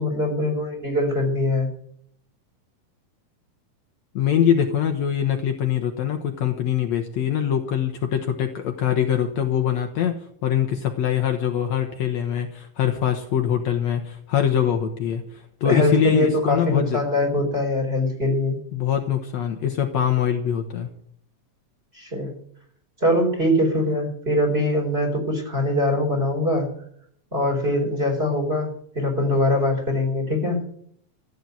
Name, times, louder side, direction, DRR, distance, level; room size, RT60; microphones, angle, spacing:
voice 1, 0.0-1.7 15.6-18.6 21.9-22.3 23.0-26.7 27.3-28.7 28.9-30.6, left 1 dB, 15° right, 3 dB, 4.6 m, -22 dB
voice 2, 4.2-10.2 10.4-17.0 18.7-20.9, left 9 dB, 65° left, 5 dB, 2.2 m, -23 dB
14.5 x 9.1 x 9.3 m, 0.65 s
omnidirectional pair, 3.6 m